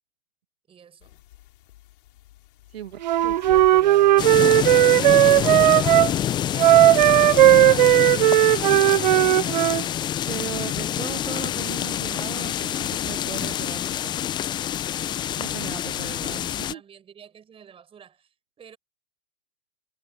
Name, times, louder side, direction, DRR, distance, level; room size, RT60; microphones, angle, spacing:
voice 1, 0.7-1.2 4.4-6.7 16.1-18.8, right 8 dB, 15° right, 6.1 m, -51 dB
sound 1, 1.0-9.5, left 15 dB, 50° left, 3.5 m, -50 dB
voice 2, 2.7-4.3 4.7-5.7 7.5-8.4 10.3-14.2 15.3-16.8, right 10 dB, 60° right, 1.6 m, -38 dB
Wind instrument woodwind instrument, 3.0-6.1 6.6-9.8, right 14 dB, 45° right, 0.4 m, -16 dB
sound 2, 4.2-16.7, left 11 dB, 15° left, 0.6 m, -27 dB
figure-of-eight pair, 115°, 34 cm